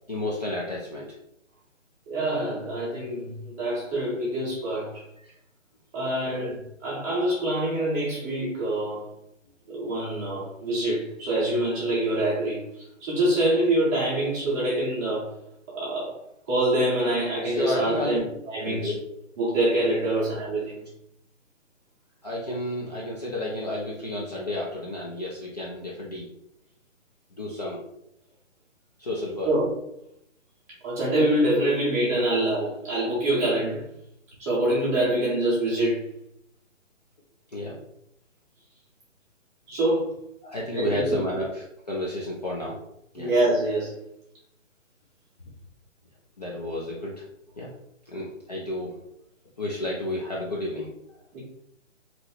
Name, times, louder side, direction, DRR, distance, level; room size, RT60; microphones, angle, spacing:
voice 1, 0.1-1.1 6.4-6.5 17.4-18.2 18.7-19.0 20.0-20.2 22.2-26.3 27.4-27.8 29.0-29.5 37.5-37.7 40.4-42.8 43.1-43.3 46.4-47.2 47.6-47.7 48.1-49.0 49.6-50.9, left 1 dB, 35° left, -5 dB, 0.4 m, -31 dB
voice 2, 2.1-5.0 5.9-9.1 9.7-15.3 15.7-16.1 16.5-18.9 19.4-20.8 29.4-29.9 30.8-33.9 34.4-36.0 39.7-40.2 40.7-41.3 43.2-44.0 51.3-51.4, right 1 dB, 15° right, -9 dB, 0.7 m, -25 dB
2.9 x 2.0 x 3.8 m, 0.76 s
hypercardioid pair, 150°, 39 cm